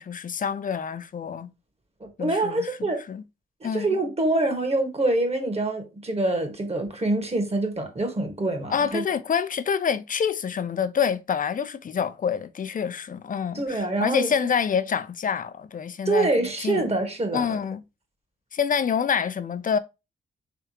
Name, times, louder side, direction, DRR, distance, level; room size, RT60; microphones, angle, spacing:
voice 1, 0.0-1.5 2.2-3.2 3.6-3.9 8.7-16.3 16.6-16.9 17.3-17.8 18.5-19.8, left 7 dB, 40° left, 0.5 m, -27 dB
voice 2, 2.0-3.0 3.6-9.1 13.5-14.3 16.0-17.6, right 2 dB, 30° right, 1.4 m, -25 dB
3.6 x 3.4 x 2.9 m
supercardioid pair, 45°, 20 cm